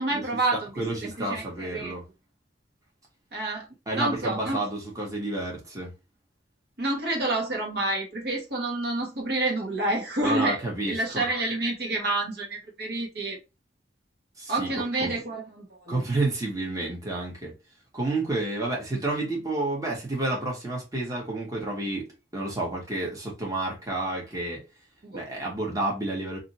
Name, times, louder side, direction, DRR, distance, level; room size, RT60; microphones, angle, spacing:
voice 1, 0.0-2.0 3.3-3.7 3.9-4.6 6.8-13.4 14.5-16.0 25.0-25.2, right 2 dB, 65° right, 1.3 m, -29 dB
voice 2, 0.8-2.0 3.9-5.9 10.2-11.2 14.4-14.7 15.0-15.1 15.9-17.5 17.9-22.1 22.3-24.6 25.1-26.4, right 2 dB, 20° right, 1.2 m, -30 dB
2.7 x 2.7 x 4.0 m
head